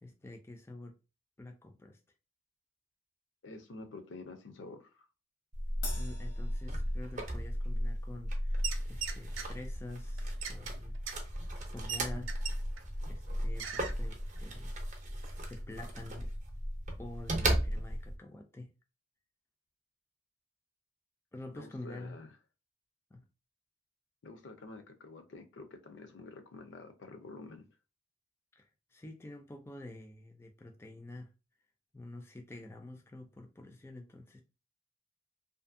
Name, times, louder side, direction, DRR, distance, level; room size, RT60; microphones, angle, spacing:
voice 1, 0.0-0.9 1.4-2.0 5.9-11.0 11.3-12.5 13.1-14.8 15.1-16.3 17.0-18.7 21.3-22.2 23.1-23.3 28.5-31.3 31.9-34.4, left 2 dB, 15° left, 0.3 m, -48 dB
voice 2, 3.4-5.1 21.5-22.3 24.2-27.7, left 3 dB, 65° left, 0.5 m, -48 dB
sound 1, 5.5-18.2, equal, 40° right, 0.6 m, -35 dB
Crash cymbal, 5.8-7.5, left 3 dB, 85° left, 0.9 m, -46 dB
sound 2, 8.6-9.5 10.2-12.9 13.2-13.3 13.6-14.0 14.4-14.5, right 7 dB, 85° right, 0.5 m, -40 dB
2.6 x 2.5 x 2.4 m
head